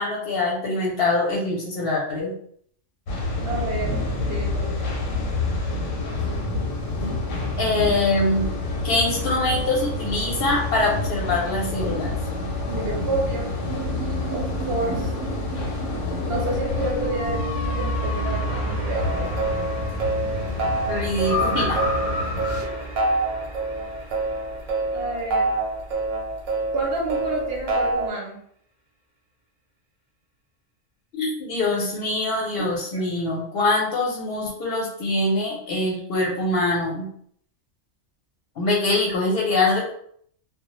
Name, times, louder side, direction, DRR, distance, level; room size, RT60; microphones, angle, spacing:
voice 1, 0.0-2.3 7.6-8.5 8.8-12.1 20.9-21.8 31.1-37.1 38.6-39.9, left 2 dB, 60° left, -3 dB, 0.7 m, -24 dB
sound 1, 3.1-22.6, left 2 dB, 90° left, 1.0 m, -28 dB
voice 2, 3.5-4.0 4.3-4.9 12.7-13.5 14.3-15.1 16.2-19.4 22.6-23.0 24.9-25.6 26.7-28.4 32.5-33.0, right 2 dB, 60° right, -1 dB, 0.7 m, -30 dB
sound 2, 13.7-25.9, right 2 dB, 20° right, 0.6 m, -33 dB
sound 3, 18.9-28.1, right 2 dB, 85° right, 1.0 m, -26 dB
2.1 x 2.0 x 2.9 m, 0.63 s
omnidirectional pair, 1.3 m